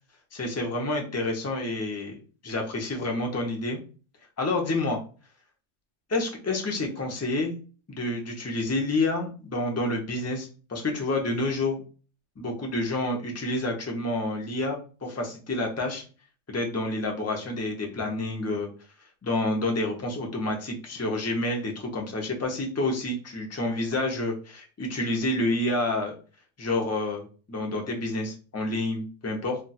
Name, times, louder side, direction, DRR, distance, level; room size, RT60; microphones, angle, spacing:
voice 1, 0.3-3.8 4.4-5.0 6.1-7.5 7.9-11.8 12.4-16.0 16.5-18.7 19.2-26.1 26.6-29.6, left 2 dB, 25° left, 1 dB, 0.3 m, -29 dB
2.3 x 2.3 x 4.0 m, 0.37 s
omnidirectional pair, 1.3 m